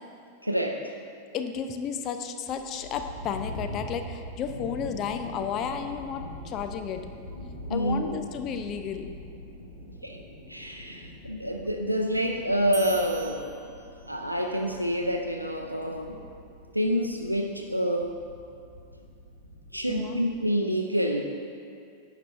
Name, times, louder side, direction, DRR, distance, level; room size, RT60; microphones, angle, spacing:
voice 1, 0.4-0.8 7.7-8.2 10.0-10.2 10.5-13.4 14.1-16.2 16.7-18.1 19.7-21.2, equal, 90° right, 3 dB, 0.4 m, -27 dB
voice 2, 1.3-7.0 7.7-9.1 19.9-20.2, left 7 dB, 35° left, 7 dB, 0.5 m, -33 dB
sound 1, 2.4-20.5, left 1 dB, 80° left, 1.4 m, -43 dB
sound 2, 12.7-14.3, right 5 dB, 15° right, 0.7 m, -44 dB
10.0 x 5.9 x 3.3 m, 2.4 s
figure-of-eight pair, 90°, 0 cm